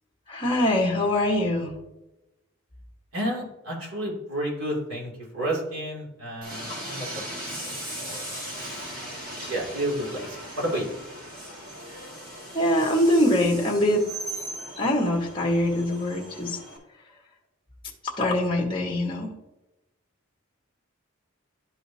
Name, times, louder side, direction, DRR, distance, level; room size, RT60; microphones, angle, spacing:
voice 1, 0.3-1.7 12.5-14.0 14.8-16.6 18.2-19.3, left 1 dB, 25° left, 0 dB, 1.3 m, -23 dB
voice 2, 3.1-7.1 7.5-8.4 9.5-10.9, right 1 dB, 85° right, -3 dB, 2.6 m, -31 dB
Train, 6.4-16.8, right 1 dB, 40° right, 1.8 m, -38 dB
11.0 x 4.9 x 2.7 m, 0.94 s
head